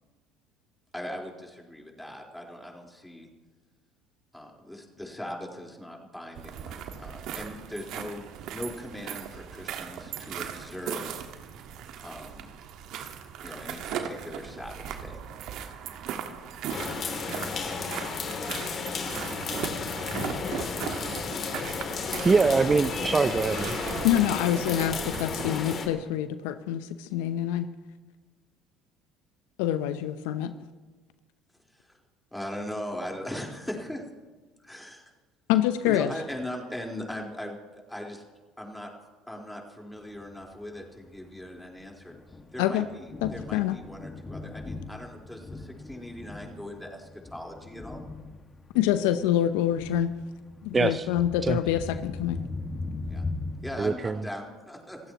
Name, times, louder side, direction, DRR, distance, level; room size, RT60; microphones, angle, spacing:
voice 1, 0.9-3.3 4.3-8.2 8.5-11.3 12.0-12.5 13.4-15.2 31.7-32.0 32.3-34.0 34.6-35.1 35.9-37.6 37.9-38.2 38.6-38.9 39.3-42.1 42.5-48.0 53.1-53.2 53.6-55.0, left 1 dB, 5° left, 0 dB, 4.1 m, -39 dB
sound 1, 6.3-25.6, right 8 dB, 60° right, 1.6 m, -38 dB
sound 2, 16.7-25.9, left 5 dB, 45° left, 3.0 m, -33 dB
voice 2, 22.2-23.8 50.7-51.0 51.4-51.6 53.8-54.2, right 4 dB, 25° right, 13 dB, 0.5 m, -23 dB
voice 3, 24.0-27.7 29.6-30.5 35.5-36.1 42.6-42.9 43.2-43.8 48.7-50.1 50.6-52.4, left 11 dB, 75° left, 11 dB, 0.7 m, -26 dB
Thunder, 40.2-53.8, left 3 dB, 25° left, 1.8 m, -40 dB
28.0 x 15.5 x 3.0 m, 1.3 s
hypercardioid pair, 65°, 0 cm